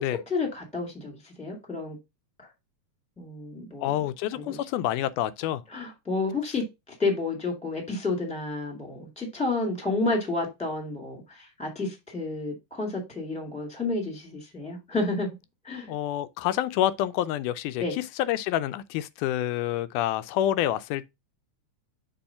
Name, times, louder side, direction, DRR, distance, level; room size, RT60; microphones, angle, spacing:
voice 1, 0.0-2.0 3.2-4.0 4.3-4.6 5.7-15.3 15.6-15.9 17.8-18.0, left 3 dB, 5° left, 1.4 m, -30 dB
voice 2, 3.8-5.6 15.9-21.1, left 12 dB, 85° left, 2.1 m, -28 dB
7.0 x 3.0 x 5.7 m
omnidirectional pair, 3.6 m